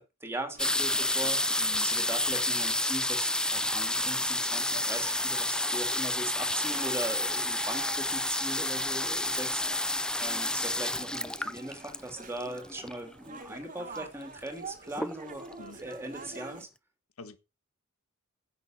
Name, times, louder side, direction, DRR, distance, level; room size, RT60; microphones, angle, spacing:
voice 1, 0.0-16.7, right 1 dB, 10° right, 3.1 m, -39 dB
sound 1, 0.5-16.7, right 4 dB, 40° right, 2.0 m, -48 dB
sound 2, 0.6-13.1 14.0-14.1 14.2-14.6 15.0-15.5 16.1-16.2 16.4-16.5, left 1 dB, 5° left, 0.5 m, -30 dB
voice 2, 1.6-1.9 15.6-15.8 17.2-17.4, left 3 dB, 75° left, 1.6 m, -45 dB
10.5 x 8.0 x 6.0 m
head